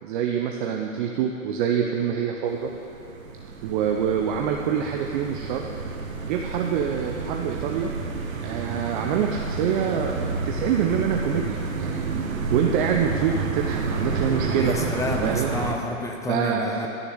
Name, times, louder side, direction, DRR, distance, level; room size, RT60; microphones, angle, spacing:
voice 1, 0.0-2.7 3.6-5.7 6.2-7.9 8.4-12.0 12.5-14.8 15.2-15.5 16.3-16.9, right 8 dB, 35° right, 2 dB, 0.8 m, -25 dB
sound 1, 2.5-15.7, right 4 dB, 70° right, 1.6 m, -30 dB
voice 2, 14.6-16.9, left 2 dB, 10° left, 2 dB, 0.7 m, -29 dB
13.0 x 7.0 x 7.9 m, 2.9 s
hypercardioid pair, 125°, 42 cm